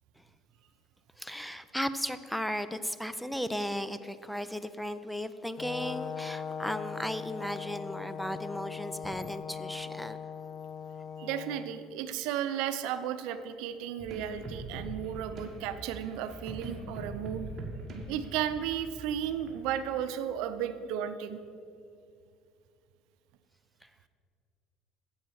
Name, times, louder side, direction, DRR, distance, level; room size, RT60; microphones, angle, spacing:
voice 1, 1.2-10.2 23.8-23.9, equal, ahead, 13 dB, 0.4 m, -36 dB
Brass instrument, 5.6-11.7, left 6 dB, 70° left, 0.6 m, -40 dB
voice 2, 11.2-17.5 18.1-21.4, right 10 dB, 75° right, 10 dB, 0.6 m, -34 dB
sound 1, 14.0-19.6, right 1 dB, 35° right, 1.7 m, -42 dB
9.5 x 7.9 x 6.4 m, 2.3 s
cardioid pair, 150°, 0 cm